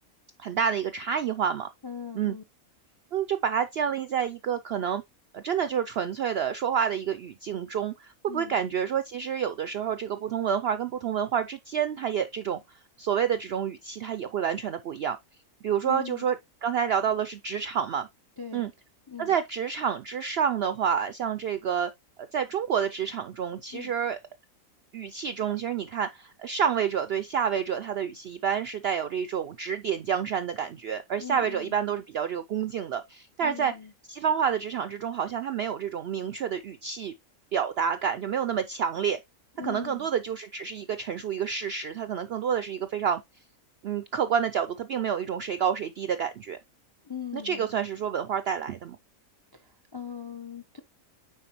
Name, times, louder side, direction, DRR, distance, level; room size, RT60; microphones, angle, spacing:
voice 1, 0.4-1.7 2.1-2.4 3.1-5.0 5.3-12.6 13.0-15.2 15.6-16.4 16.6-18.1 18.5-18.7 19.2-21.9 22.3-24.2 24.9-33.7 34.1-37.1 37.5-39.2 39.6-43.2 43.8-46.6 47.4-49.0, right 8 dB, 70° right, 0.5 m, -28 dB
voice 2, 1.8-2.4 8.3-8.6 15.8-16.3 18.4-18.7 19.1-19.3 23.7-23.9 31.2-31.8 33.4-33.9 39.6-40.1 47.0-47.7 49.5-50.8, left 8 dB, 35° left, 0.4 m, -40 dB
9.1 x 4.2 x 2.9 m
omnidirectional pair, 1.5 m